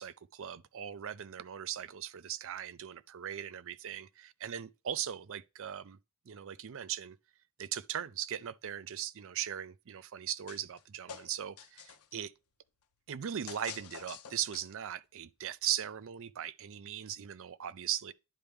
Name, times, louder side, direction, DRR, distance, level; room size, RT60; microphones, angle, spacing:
voice 1, 0.0-4.0 4.4-6.0 6.3-7.2 7.6-12.3 13.1-18.1, right 10 dB, 60° right, 0.5 m, -39 dB
sound 1, 10.5-10.8 11.1-12.2 13.5-14.9, left 7 dB, 85° left, 0.8 m, -47 dB
10.5 x 4.4 x 3.5 m
head